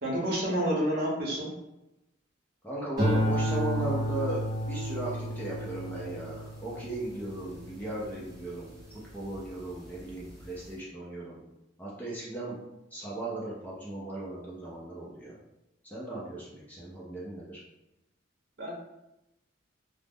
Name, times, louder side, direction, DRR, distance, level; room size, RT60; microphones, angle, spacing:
voice 1, 0.0-1.5 18.6-18.7, equal, 50° right, -4 dB, 0.8 m, -29 dB
voice 2, 2.6-4.4 4.7-8.7 9.1-11.4 11.8-12.6 12.9-15.4 15.8-17.6, right 2 dB, 10° left, -7 dB, 0.5 m, -36 dB
sound 1, 3.0-9.5 10.0-10.4, equal, 20° right, 1.1 m, -32 dB
2.4 x 2.0 x 3.4 m, 0.93 s
head